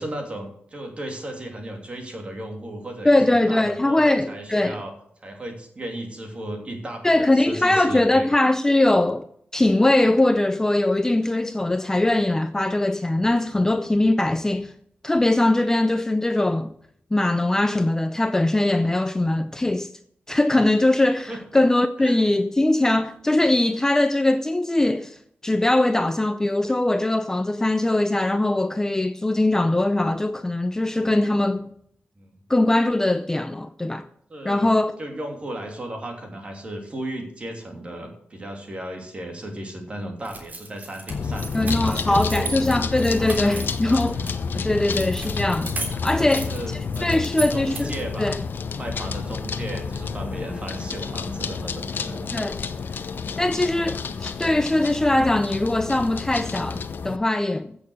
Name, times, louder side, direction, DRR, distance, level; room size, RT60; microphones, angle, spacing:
voice 1, 0.0-4.9 5.2-8.3 21.3-21.4 22.0-22.2 32.2-32.3 34.3-34.7 35.0-42.6 43.2-43.7 44.1-44.4 44.7-44.9 46.2-48.4 48.7-52.3, right 1 dB, 30° right, 3.0 m, -35 dB
voice 2, 3.0-4.8 7.0-9.3 9.5-14.7 15.0-16.7 17.1-19.9 20.3-25.2 25.4-31.7 32.5-34.1 34.4-34.9 41.5-44.2 44.5-45.7 46.0-47.9 48.2-48.4 52.3-52.6 53.4-57.8, left 2 dB, 15° left, 0.5 m, -21 dB
sound 1, 40.2-44.3 44.9-48.1, right 3 dB, 45° right, 3.4 m, -36 dB
sound 2, 41.1-57.2, left 5 dB, 60° left, 0.8 m, -30 dB
16.0 x 6.7 x 6.5 m
wide cardioid pair, 175°, 4 cm